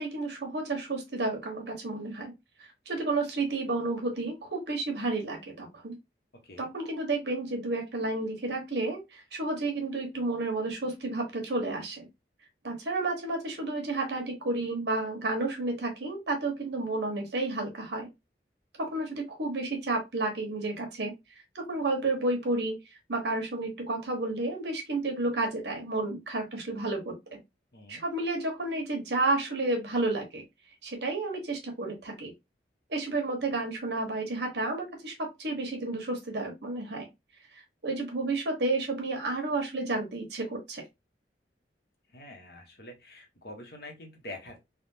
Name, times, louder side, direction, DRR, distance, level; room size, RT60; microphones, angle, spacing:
voice 1, 0.0-2.3 2.9-6.0 6.6-12.1 12.6-18.1 18.8-21.1 21.5-22.8 23.1-27.1 27.9-30.4 30.8-32.3 32.9-37.1 37.5-40.8, right 2 dB, 75° right, 1.2 m, -31 dB
voice 2, 27.7-28.0 42.1-44.6, left 1 dB, 60° left, 1.0 m, -45 dB
3.5 x 2.3 x 2.7 m
head